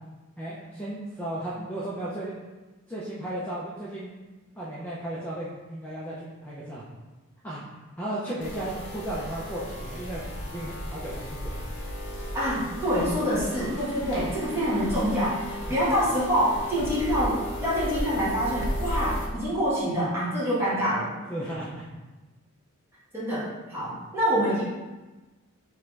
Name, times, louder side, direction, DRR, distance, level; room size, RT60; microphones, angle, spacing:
voice 1, 0.4-2.3 2.9-4.1 4.5-6.8 7.4-7.6 8.0-11.7 15.7-15.8 21.3-21.9 23.8-23.9, right 1 dB, 10° left, -8 dB, 0.6 m, -35 dB
sound 1, 8.4-19.3, equal, 55° left, 0.9 m, -35 dB
voice 2, 12.3-21.1 23.1-24.6, equal, 10° right, -9 dB, 1.5 m, -26 dB
3.7 x 3.1 x 4.5 m, 1.2 s
head